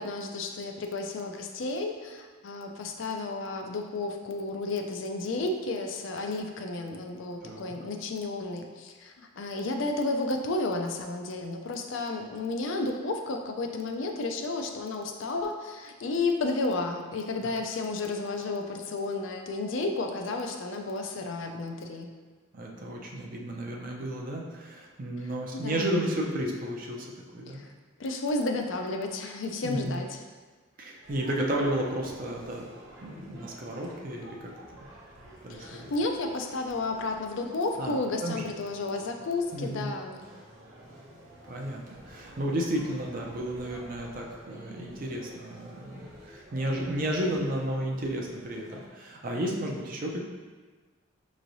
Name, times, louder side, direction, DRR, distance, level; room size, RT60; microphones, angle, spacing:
voice 1, 0.0-22.1 25.2-25.9 27.5-27.7 28.0-30.2 35.5-40.2, left 2 dB, 65° left, 4 dB, 0.4 m, -32 dB
voice 2, 7.4-7.7 22.5-27.6 29.6-30.0 30.8-32.7 33.0-34.5 35.4-35.9 37.8-37.9 38.2-38.4 39.5-40.0 41.5-50.2, right 1 dB, 40° right, -1 dB, 0.5 m, -32 dB
sound 1, 31.0-48.9, right 1 dB, 65° right, 0.8 m, -51 dB
5.5 x 3.1 x 2.6 m, 1.4 s
head